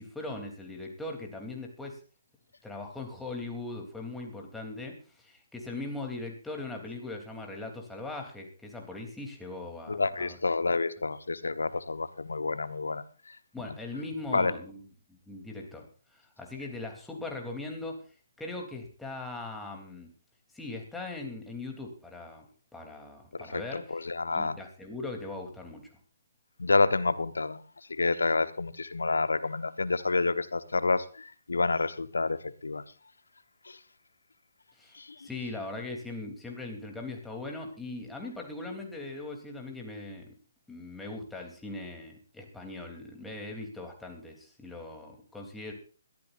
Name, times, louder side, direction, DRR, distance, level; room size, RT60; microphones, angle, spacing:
voice 1, 0.0-2.0 2.6-10.4 13.5-18.0 18.4-20.1 20.5-22.5 22.7-24.0 24.3-25.9 34.8-40.3 40.7-45.7, left 2 dB, 5° left, 1 dB, 3.3 m, -40 dB
voice 2, 9.9-13.4 14.3-14.5 23.5-24.6 26.6-27.6 27.9-32.8 33.6-33.8 35.0-35.3, left 3 dB, 75° left, 14 dB, 1.2 m, -29 dB
21.5 x 14.0 x 2.6 m, 0.38 s
figure-of-eight pair, 135°, 0 cm